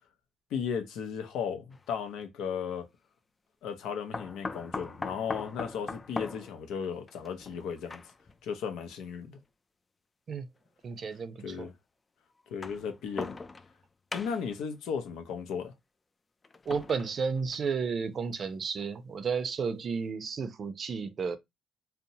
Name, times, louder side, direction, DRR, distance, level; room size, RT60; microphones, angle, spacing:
voice 1, 0.5-2.9 3.6-8.0 8.4-9.4 11.4-11.7 12.5-13.5 14.1-15.7, left 7 dB, 90° left, 0.5 m, -35 dB
sound 1, 1.7-1.8 4.1-8.4 9.4-9.5 10.7-10.8 12.4-13.8 14.1-14.6 16.4-17.8 18.3-18.4 18.8-18.9, left 3 dB, 30° left, 0.3 m, -40 dB
voice 2, 10.8-11.7 16.7-21.4, right 5 dB, 50° right, 0.4 m, -32 dB
2.7 x 2.1 x 2.6 m
cardioid pair, 90°, 0 cm